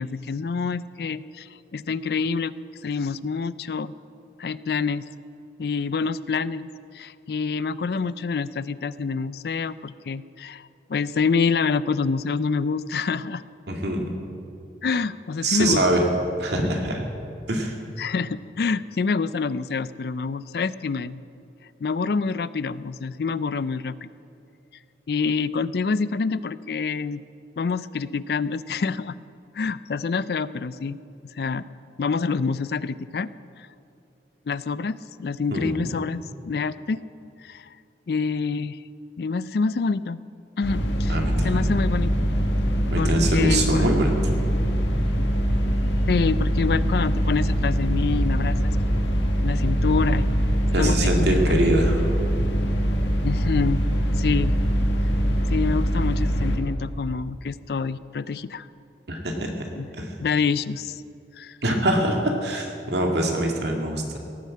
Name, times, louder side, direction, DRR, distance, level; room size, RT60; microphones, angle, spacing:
voice 1, 0.0-2.5 2.8-3.9 4.4-5.0 5.6-6.7 6.9-13.4 14.8-15.8 18.0-21.2 21.8-24.1 25.1-27.2 27.6-29.2 29.5-31.0 31.3-31.6 32.0-33.3 33.6-33.7 34.5-37.0 37.4-37.8 38.1-38.8 39.2-40.2 40.6-41.2 41.4-42.3 43.0-43.9 46.1-48.6 49.4-50.3 50.8-51.1 51.5-51.6 53.2-53.8 54.1-54.5 55.5-58.7 59.8-59.9 60.2-61.0 61.4-61.6, left 5 dB, 60° left, 17 dB, 0.4 m, -27 dB
voice 2, 13.7-14.0 15.4-16.0 16.4-17.0 17.5-17.8 35.5-35.9 41.1-41.7 42.9-44.1 50.7-52.0 59.1-59.7 60.0-60.1 61.6-64.2, right 1 dB, 70° right, 2 dB, 2.2 m, -24 dB
sound 1, 40.6-56.6, equal, 90° left, 1.6 m, -23 dB
17.0 x 9.2 x 7.5 m, 2.5 s
head